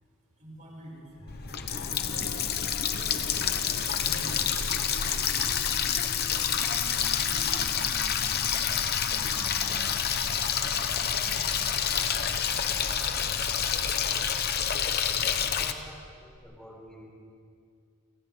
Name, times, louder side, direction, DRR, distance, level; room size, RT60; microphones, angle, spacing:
voice 1, 0.3-1.7 2.0-2.9 4.0-6.0 6.4-9.1 9.5-13.7, equal, 35° right, -4 dB, 7.4 m, -49 dB
sound 1, 1.1-14.0 16.3-16.4, left 1 dB, 75° left, 1.7 m, -45 dB
Water tap faucet, 1.3-15.7, left 8 dB, 45° left, 1.1 m, -28 dB
voice 2, 15.4-17.1, equal, 5° left, -4 dB, 5.6 m, -48 dB
30.0 x 25.5 x 3.9 m, 2.3 s
head